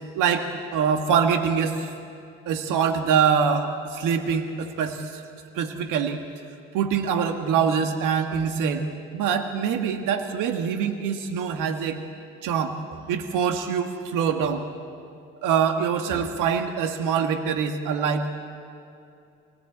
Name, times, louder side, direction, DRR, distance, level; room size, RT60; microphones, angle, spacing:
voice 1, 0.1-1.9 2.5-5.2 5.5-6.2 6.7-8.8 9.1-12.0 12.4-14.6 15.4-18.3, right 7 dB, 70° right, 6 dB, 1.6 m, -24 dB
25.5 x 18.5 x 8.6 m, 2.5 s
hypercardioid pair, 55°, 33 cm